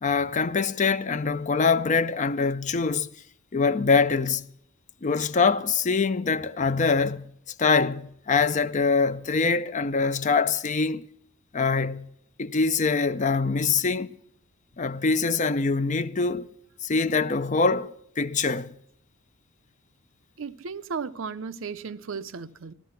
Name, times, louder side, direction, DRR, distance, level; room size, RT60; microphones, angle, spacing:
voice 1, 0.0-3.1 3.5-4.5 5.0-7.3 7.6-11.1 11.5-12.1 12.4-14.2 14.8-16.5 16.8-18.7, left 4 dB, 35° left, 0.5 m, -24 dB
voice 2, 20.4-22.7, right 5 dB, 65° right, 0.6 m, -35 dB
15.5 x 13.0 x 5.7 m
head